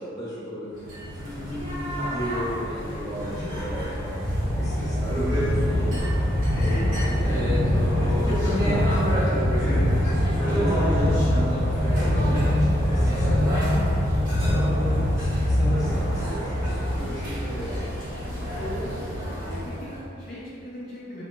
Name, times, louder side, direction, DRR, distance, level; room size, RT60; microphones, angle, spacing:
voice 1, 0.0-4.2 4.4-11.3 11.8-13.7 14.5-16.6 17.0-17.9, equal, 15° left, -10 dB, 0.9 m, -35 dB
sound 1, 0.8-20.0, equal, 40° right, 0.9 m, -24 dB
sound 2, 0.8-19.6, right 1 dB, 90° right, 0.3 m, -41 dB
voice 2, 18.4-19.2 19.4-21.2, left 1 dB, 45° left, -10 dB, 0.6 m, -38 dB
5.1 x 2.1 x 3.0 m, 2.7 s
head